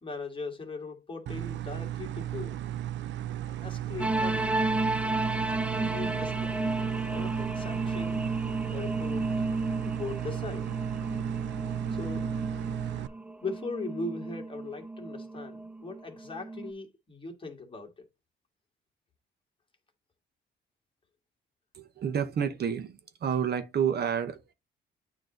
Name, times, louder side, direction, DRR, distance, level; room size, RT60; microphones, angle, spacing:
voice 1, 0.0-2.7 3.5-4.6 5.4-8.3 8.7-10.7 11.6-12.3 12.8-13.1 13.4-18.0, left 3 dB, 25° left, 1.9 m, -40 dB
sound 1, 1.3-13.1, right 12 dB, 70° right, 0.5 m, -35 dB
sound 2, 4.0-16.7, right 2 dB, 5° right, 0.5 m, -32 dB
voice 2, 21.7-24.5, right 8 dB, 55° right, 1.0 m, -30 dB
8.9 x 3.0 x 3.9 m
cardioid pair, 90°, 20 cm